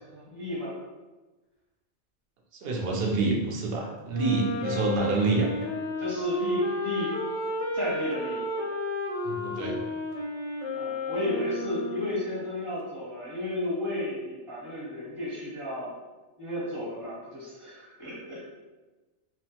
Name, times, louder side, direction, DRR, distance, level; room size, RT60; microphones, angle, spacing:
voice 1, 0.1-0.7 6.0-7.1 7.7-8.4 10.7-15.9 16.4-18.5, left 1 dB, 25° right, -8 dB, 0.9 m, -33 dB
voice 2, 2.6-5.5 9.2-9.8, right 3 dB, 60° right, 0 dB, 0.7 m, -27 dB
Wind instrument woodwind instrument, 4.1-12.4, left 1 dB, 85° left, 1.0 m, -32 dB
3.0 x 2.1 x 2.8 m, 1.2 s
omnidirectional pair, 1.3 m